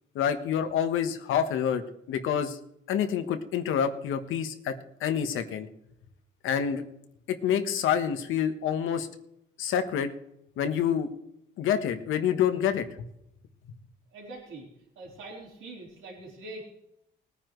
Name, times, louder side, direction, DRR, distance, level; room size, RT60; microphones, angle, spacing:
voice 1, 0.1-1.8 2.1-2.6 2.9-4.7 5.0-5.7 6.4-6.8 7.4-9.1 9.6-10.1 10.6-11.1 11.6-12.9, left 8 dB, 85° left, 8 dB, 1.3 m, -27 dB
voice 2, 14.1-14.7 15.0-16.6, right 2 dB, 85° right, -3 dB, 4.0 m, -43 dB
19.5 x 9.7 x 3.2 m, 0.79 s
cardioid pair, 90°, 20 cm